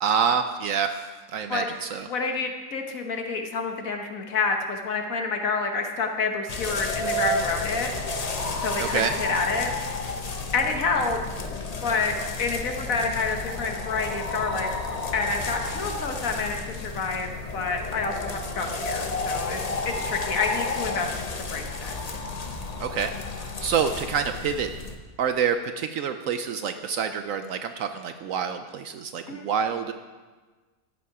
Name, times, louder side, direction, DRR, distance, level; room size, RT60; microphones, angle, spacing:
voice 1, 0.0-1.0 1.3-2.1 8.8-9.1 22.8-24.7 25.2-29.9, right 7 dB, 70° right, 8 dB, 0.9 m, -27 dB
voice 2, 2.1-7.9 8.6-9.7 10.5-11.2 11.8-12.1 12.4-14.7 15.1-21.9 29.3-29.5, left 4 dB, 60° left, 4 dB, 1.5 m, -28 dB
sound 1, 6.5-25.0, left 3 dB, 35° left, 0.7 m, -32 dB
13.5 x 8.5 x 4.8 m, 1.3 s
omnidirectional pair, 1.7 m